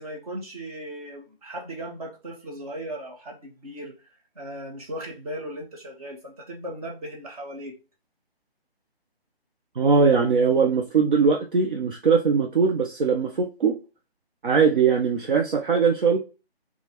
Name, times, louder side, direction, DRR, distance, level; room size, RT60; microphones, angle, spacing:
voice 1, 0.0-4.0 4.3-7.7, right 1 dB, 35° right, 1.2 m, -37 dB
voice 2, 9.8-13.7 14.4-16.2, right 5 dB, 55° right, 0.6 m, -20 dB
5.0 x 2.4 x 2.9 m
figure-of-eight pair, 155°, 32 cm